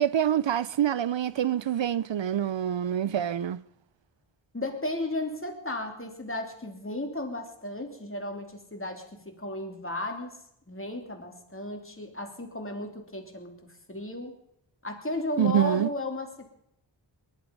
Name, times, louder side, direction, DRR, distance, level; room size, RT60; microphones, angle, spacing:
voice 1, 0.0-3.6 15.4-15.9, right 10 dB, 70° right, 0.6 m, -26 dB
voice 2, 4.5-10.4 10.7-14.3 14.8-16.4, left 2 dB, 25° left, 3.1 m, -34 dB
21.5 x 11.5 x 5.3 m
wide cardioid pair, 65°, 46 cm